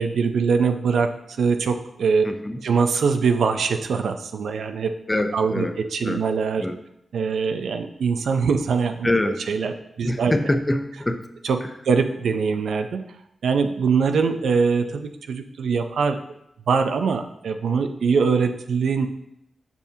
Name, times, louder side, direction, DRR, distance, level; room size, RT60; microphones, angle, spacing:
voice 1, 0.0-2.3 2.6-5.0 5.3-6.6 7.1-9.1 9.5-10.3 11.4-13.0 13.4-16.2 16.7-19.1, right 5 dB, 90° right, 7 dB, 0.5 m, -22 dB
voice 2, 2.2-2.6 5.1-5.7 6.1-6.2 6.6-6.8 9.0-9.4 10.0-11.2 11.6-11.7, left 1 dB, 15° left, 7 dB, 0.5 m, -24 dB
7.0 x 5.7 x 2.7 m, 0.79 s
wide cardioid pair, 120°, 0 cm